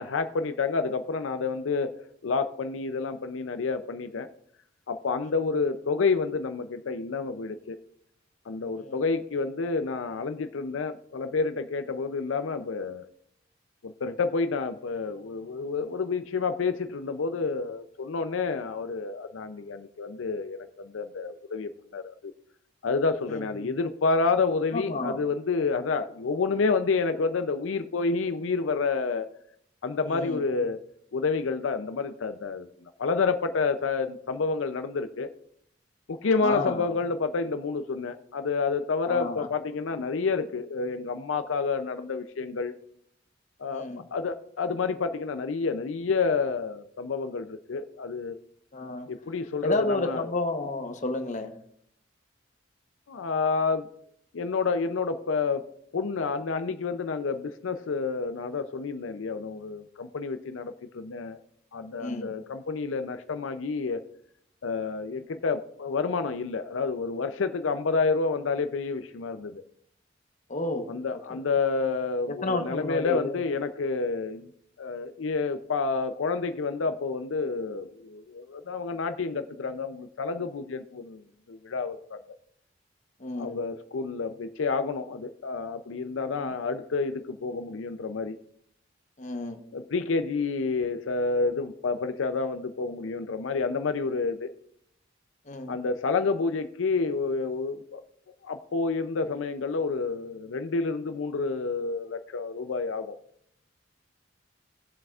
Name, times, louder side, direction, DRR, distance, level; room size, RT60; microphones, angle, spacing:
voice 1, 0.0-4.3 4.9-7.8 8.5-13.0 13.8-22.3 22.8-29.3 29.8-30.8 31.1-32.7 33.0-35.3 36.1-42.7 43.6-48.4 49.1-50.3 53.1-53.9 54.3-55.7 55.9-61.4 61.7-64.0 64.6-69.6 70.9-74.5 74.8-81.2 81.5-82.4 83.4-88.4 89.7-94.5 95.7-98.0 98.4-103.2, left 4 dB, 85° left, 9 dB, 0.5 m, -29 dB
voice 2, 23.3-23.7 24.7-25.2 30.1-30.4 36.4-36.9 39.0-39.5 43.7-44.0 48.7-49.1 49.6-51.5 62.0-62.4 70.5-71.4 72.4-73.4 83.2-83.6 86.3-86.5 89.2-89.6 95.5-95.8, left 2 dB, 40° left, 6 dB, 1.0 m, -31 dB
18.0 x 7.6 x 2.4 m, 0.69 s
head